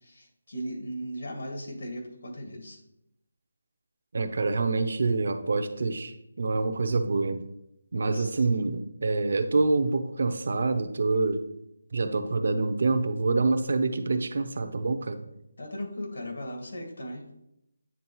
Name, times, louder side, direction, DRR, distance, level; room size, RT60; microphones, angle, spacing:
voice 1, 0.0-2.8 8.1-8.7 15.6-17.2, equal, 75° left, 2 dB, 1.7 m, -37 dB
voice 2, 4.1-7.4 7.9-11.4 11.9-15.2, right 3 dB, 60° right, 8 dB, 0.7 m, -26 dB
9.5 x 3.4 x 3.0 m, 0.82 s
figure-of-eight pair, 170°, 0 cm